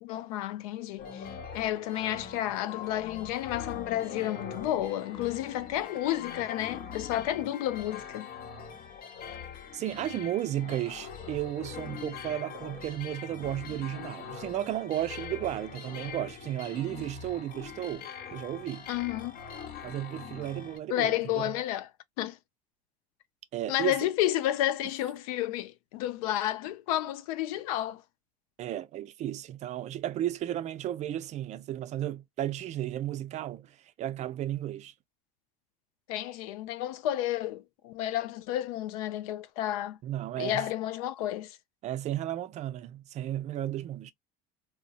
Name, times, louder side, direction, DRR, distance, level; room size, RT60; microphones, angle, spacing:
voice 1, 0.0-8.3 18.9-19.4 20.9-21.9 22.2-22.4 23.7-28.0 36.1-40.0 40.4-41.6, left 13 dB, 75° left, 0.4 m, -31 dB
sound 1, 1.0-20.8, left 7 dB, 50° left, 0.8 m, -43 dB
voice 2, 9.7-18.9 19.8-21.5 23.5-24.1 28.6-34.9 40.0-40.7 41.8-44.1, right 12 dB, 40° right, 0.4 m, -34 dB
2.6 x 2.1 x 2.4 m
supercardioid pair, 95°, 18 cm